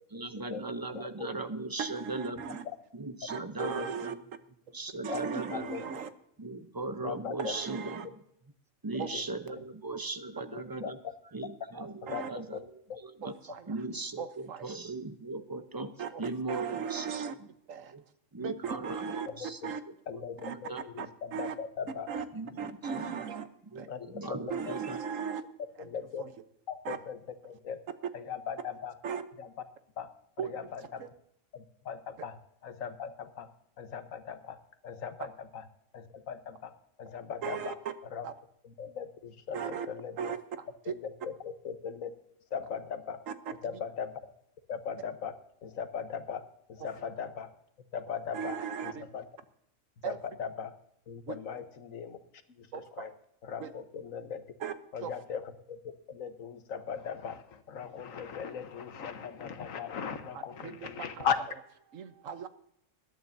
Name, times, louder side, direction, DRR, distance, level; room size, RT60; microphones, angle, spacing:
voice 1, 0.1-2.6 2.9-4.2 4.7-6.0 6.4-8.2 8.8-11.0 11.3-13.3 13.7-15.9 16.2-17.2 17.9-18.0 18.3-19.6 20.1-20.2 20.5-20.8 22.3-23.2 23.6-25.0, right 2 dB, 20° right, 9 dB, 0.7 m, -38 dB
voice 2, 0.9-1.3 3.6-4.1 5.1-5.2 5.5-5.8 7.0-7.6 9.1-9.2 10.5-10.9 12.0-12.6 12.9-13.0 13.5-13.6 19.3-19.5 20.1-22.1 23.9-24.4 25.8-26.2 26.7-27.8 28.1-29.0 29.4-29.5 30.0-30.1 30.4-31.0 31.5-33.5 33.8-34.6 34.8-35.6 35.9-36.7 37.0-37.8 38.0-38.3 38.6-40.3 40.8-42.1 42.5-43.2 43.6-44.2 44.7-47.5 47.9-49.2 50.0-50.7 51.1-52.2 52.5-53.1 53.4-54.4 54.9-55.8 56.1-61.4, left 7 dB, 90° left, 9 dB, 1.5 m, -39 dB
voice 3, 1.8-2.6 3.3-4.1 5.0-6.1 7.4-8.1 9.0-9.1 12.1-12.3 13.5-13.7 14.2-14.7 16.0-16.1 16.5-17.3 17.7-17.9 18.4-19.3 19.6-19.8 20.4-20.5 21.0-21.1 21.3-21.5 22.1-22.2 22.6-23.5 23.7-23.9 24.5-25.4 26.2-26.3 26.8-27.0 29.0-29.3 30.4-30.5 31.0-31.1 37.4-37.7 38.2-38.3 39.5-39.9 40.2-40.4 48.3-49.1 50.0-50.2 51.3-51.4 52.7-52.8 53.6-53.7 54.6-54.7 55.0-55.1 60.3-61.3 61.9-62.5, right 7 dB, 80° right, 10 dB, 1.3 m, -37 dB
20.5 x 12.0 x 2.7 m, 0.72 s
omnidirectional pair, 1.3 m